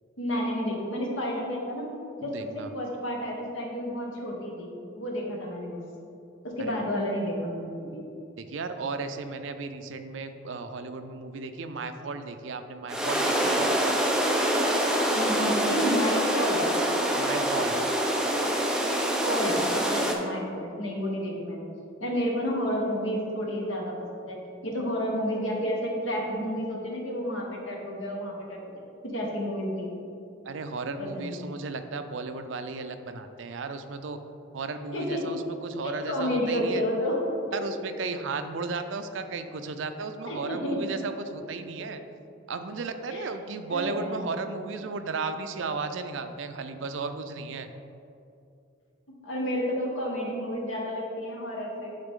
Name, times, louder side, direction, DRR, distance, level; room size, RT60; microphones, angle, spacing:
voice 1, 0.2-1.9 2.2-5.8 6.6-8.0 15.1-16.6 19.3-21.7 22.0-24.4 24.6-28.6 29.1-29.9 31.0-31.4 34.9-35.2 35.8-37.2 40.2-40.8 41.8-41.9 42.8-43.3 43.7-44.3 49.2-52.0, equal, 80° left, -1 dB, 1.4 m, -31 dB
voice 2, 2.2-2.7 6.6-6.8 8.4-13.6 17.2-17.8 30.5-34.2 34.5-36.8 37.5-42.0 42.5-47.7, right 4 dB, 70° right, 8 dB, 0.5 m, -35 dB
sound 1, 12.9-20.1, right 1 dB, 5° right, 0.6 m, -25 dB
10.0 x 4.0 x 3.7 m, 2.6 s
head